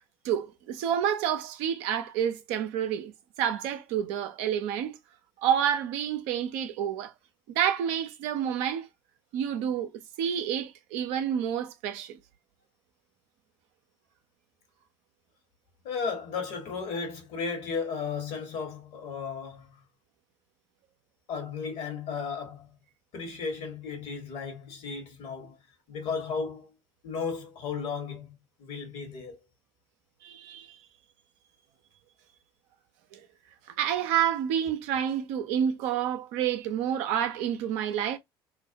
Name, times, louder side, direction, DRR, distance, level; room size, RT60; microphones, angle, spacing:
voice 1, 0.2-3.1 3.4-5.0 5.4-7.1 7.5-8.9 9.3-9.9 10.2-12.2 30.2-30.8 33.1-33.3 33.7-38.2, right 9 dB, 65° right, 0.5 m, -29 dB
voice 2, 15.8-19.8 21.3-22.7 23.1-25.6 25.9-26.7 27.0-29.4, left 5 dB, 60° left, 1.1 m, -35 dB
2.5 x 2.1 x 2.6 m
hypercardioid pair, 65°, 12 cm